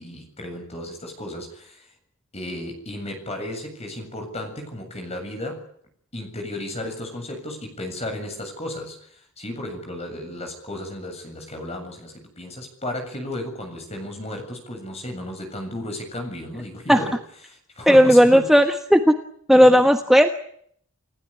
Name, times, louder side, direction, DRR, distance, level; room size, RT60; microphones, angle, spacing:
voice 1, 0.0-1.9 2.3-5.7 6.1-17.2 17.5-18.6 19.5-19.9, left 1 dB, 30° left, 4 dB, 7.7 m, -34 dB
voice 2, 17.9-18.6 18.9-19.1 19.5-20.3, equal, ahead, 5 dB, 1.3 m, -14 dB
30.0 x 16.5 x 9.9 m, 0.66 s
head